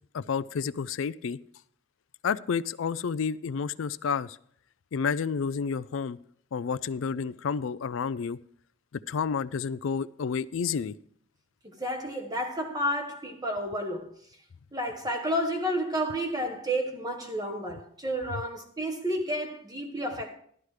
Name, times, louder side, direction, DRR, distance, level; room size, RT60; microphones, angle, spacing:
voice 1, 0.1-1.4 2.2-4.4 4.9-6.2 6.5-8.4 9.1-10.9, left 6 dB, 65° left, 0.4 m, -30 dB
voice 2, 11.6-14.1 14.7-20.4, equal, 20° right, 1.4 m, -31 dB
13.0 x 12.0 x 3.3 m
head